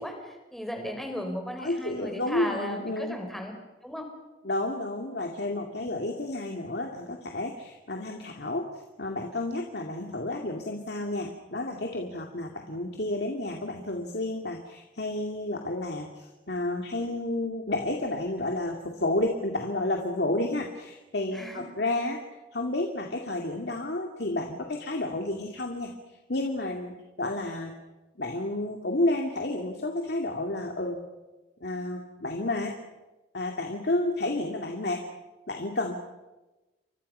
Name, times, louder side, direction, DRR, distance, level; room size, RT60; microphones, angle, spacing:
voice 1, 0.0-3.5 3.8-4.1 5.8-5.9 21.3-21.6, equal, ahead, 3 dB, 4.2 m, -36 dB
voice 2, 1.6-3.2 4.4-22.2 22.5-27.7 28.2-31.0 31.6-32.7 33.3-35.0 35.5-35.9, left 2 dB, 65° left, 2 dB, 2.3 m, -31 dB
30.0 x 24.0 x 5.6 m, 1.1 s
head